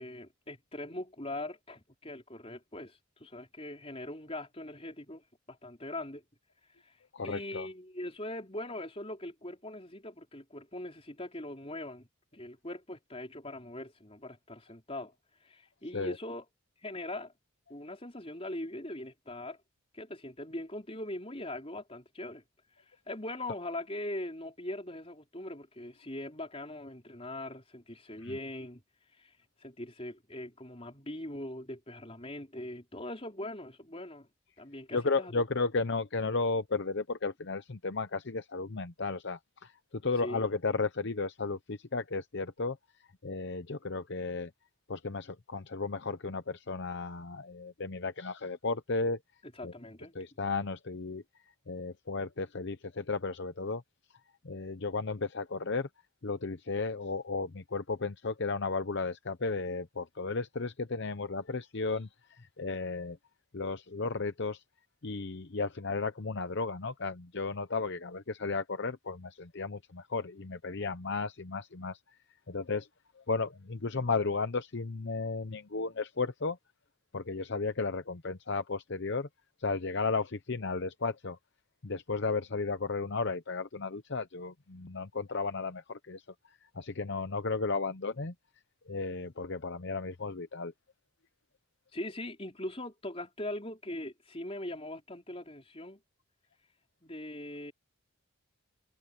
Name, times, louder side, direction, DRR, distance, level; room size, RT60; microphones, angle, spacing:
voice 1, 0.0-6.2 6.8-15.1 15.4-16.4 16.8-17.3 17.7-19.6 19.9-22.4 23.1-28.8 29.1-34.3 34.6-35.3 40.2-40.5 49.4-50.1 91.9-96.0 97.0-97.7, left 1 dB, 25° left, 4.6 m, -41 dB
voice 2, 7.1-7.7 15.9-16.1 28.2-28.4 34.9-42.8 43.2-44.5 44.9-49.2 49.6-49.7 50.1-51.2 51.7-53.8 54.4-55.9 56.2-63.2 63.5-64.6 65.0-72.0 72.5-72.9 73.2-76.6 77.1-79.3 79.6-81.4 81.8-86.2 86.7-88.3 88.9-90.7, left 3 dB, 55° left, 0.8 m, -34 dB
head